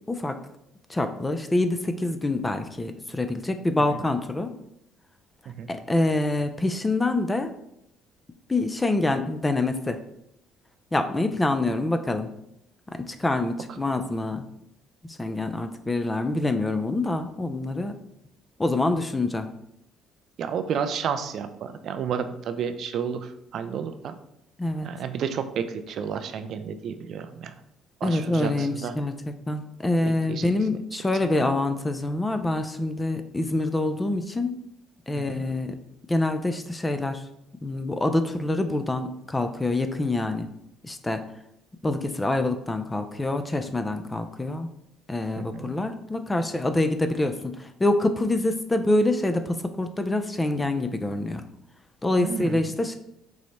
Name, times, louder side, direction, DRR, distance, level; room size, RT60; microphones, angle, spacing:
voice 1, 0.9-4.5 5.7-7.5 8.5-10.0 10.9-12.3 13.1-14.4 15.2-17.9 18.6-19.5 24.6-24.9 28.0-29.1 29.5-34.6 35.1-35.7 36.1-37.2 37.6-40.5 40.8-41.2 41.8-44.7 45.1-51.4 52.0-53.0, left 2 dB, 20° left, 7 dB, 0.4 m, -26 dB
voice 2, 20.4-24.1 24.8-27.5 28.0-28.9 30.0-30.5 31.4-31.5 35.2-35.4 45.4-45.7 52.2-52.7, right 7 dB, 60° right, 9 dB, 0.4 m, -31 dB
4.7 x 2.1 x 4.1 m, 0.79 s
supercardioid pair, 65°, 0 cm